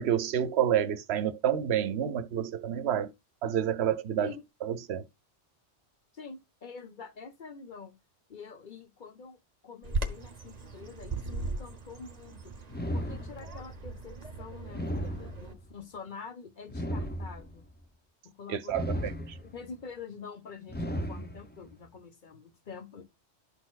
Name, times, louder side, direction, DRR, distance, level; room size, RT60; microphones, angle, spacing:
voice 1, 0.0-3.1 3.4-4.3 4.6-5.0 18.5-19.1, right 10 dB, 70° right, 0.9 m, -29 dB
voice 2, 6.1-7.9 8.3-9.4 9.6-12.5 12.9-17.6 18.2-19.0 19.4-23.0, left 5 dB, 45° left, 1.1 m, -46 dB
Bird vocalization bird call bird song, 9.8-15.5, right 2 dB, 40° right, 0.9 m, -38 dB
sound 1, 12.7-13.8 14.7-15.8 16.7-17.7 18.7-19.7 20.7-21.7, equal, 15° left, 0.4 m, -35 dB
12.5 x 4.2 x 2.4 m
omnidirectional pair, 1.2 m